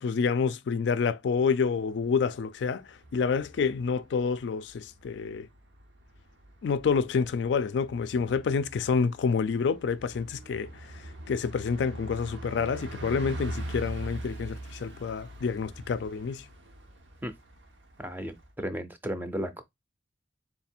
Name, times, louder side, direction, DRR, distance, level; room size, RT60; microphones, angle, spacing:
voice 1, 0.0-5.5 6.6-10.7 11.3-16.4, left 5 dB, 70° left, 0.3 m, -28 dB
Bus, 1.4-18.5, right 1 dB, 85° right, 0.9 m, -43 dB
voice 2, 18.0-19.6, equal, 10° right, 0.4 m, -34 dB
3.6 x 2.3 x 4.3 m
head